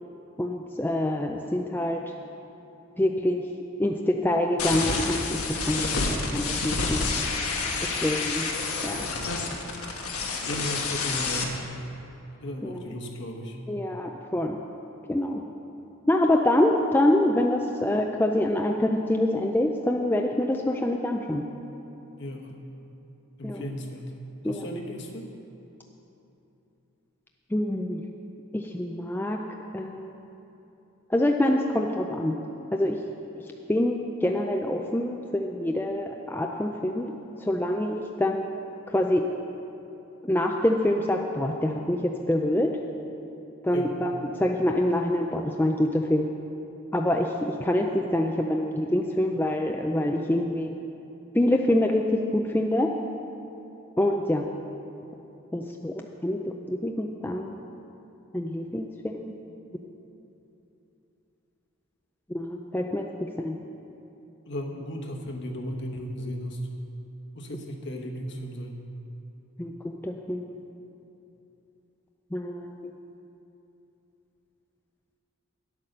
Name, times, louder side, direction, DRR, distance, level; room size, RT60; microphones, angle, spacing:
voice 1, 0.4-2.0 3.0-3.4 3.8-5.9 6.3-7.0 7.9-8.5 8.8-9.1 12.6-12.8 13.7-14.6 15.1-15.4 16.1-21.4 23.4-23.6 24.4-24.6 27.5-28.0 28.5-29.4 29.7-30.1 31.1-32.4 32.7-33.0 33.7-37.1 37.4-38.4 38.9-39.2 40.2-42.7 43.6-46.3 46.9-50.7 51.3-52.9 54.0-54.5 55.5-55.9 56.2-56.4 56.7-57.6 58.3-59.3 62.3-63.1 63.4-63.6 69.6-70.6 72.3-72.9, left 1 dB, 10° left, 1 dB, 0.4 m, -25 dB
sound 1, 4.6-11.4, left 4 dB, 85° left, 1.3 m, -29 dB
voice 2, 10.5-11.6 12.4-13.6 22.2-22.6 23.4-24.1 24.4-25.3 43.7-44.0 64.5-66.6 67.3-68.8, equal, 55° left, 2 dB, 1.1 m, -35 dB
10.0 x 8.4 x 6.5 m, 3.0 s
head